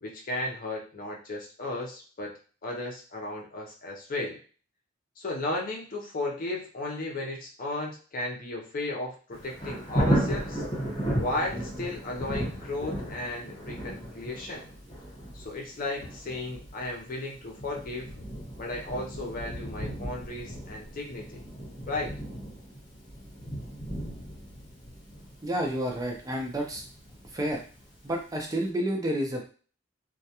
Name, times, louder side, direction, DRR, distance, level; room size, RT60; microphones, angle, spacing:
voice 1, 0.0-4.4 5.2-10.6 11.2-14.7 15.3-18.1 18.6-21.4 21.9-22.1, left 2 dB, 45° left, 0 dB, 0.6 m, -35 dB
Thunder, 9.3-28.1 28.5-28.6, right 1 dB, 25° left, 1.0 m, -35 dB
voice 2, 25.4-26.8 27.3-27.6 28.0-29.5, right 1 dB, 20° right, 1 dB, 0.4 m, -30 dB
2.3 x 2.1 x 2.8 m, 0.39 s
head